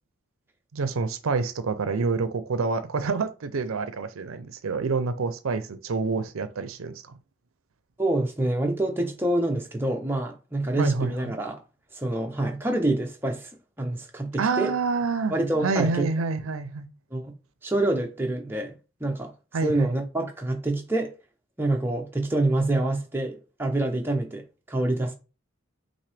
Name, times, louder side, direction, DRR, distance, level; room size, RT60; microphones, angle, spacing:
voice 1, 0.7-7.0 10.8-11.4 14.4-15.3 15.6-16.9 19.5-19.9, right 4 dB, 85° right, 0.5 m, -27 dB
voice 2, 8.0-11.6 11.9-13.5 13.8-14.7 15.3-16.1 17.1-17.3 17.6-18.7 19.0-19.3 19.6-21.1 21.6-25.1, right 2 dB, 10° right, 0.6 m, -26 dB
5.8 x 2.7 x 3.3 m
head